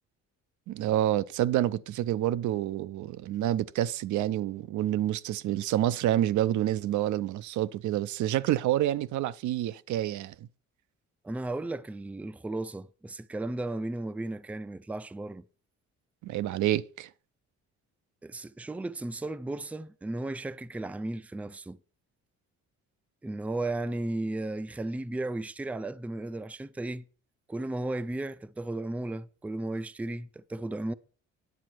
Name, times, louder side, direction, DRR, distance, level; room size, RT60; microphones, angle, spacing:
voice 1, 0.7-10.3 16.2-17.1, right 13 dB, 75° right, 0.5 m, -28 dB
voice 2, 11.2-15.4 18.2-21.8 23.2-27.1 27.5-30.9, right 2 dB, 5° right, 0.4 m, -35 dB
9.6 x 7.6 x 4.5 m
cardioid pair, 90°, 30 cm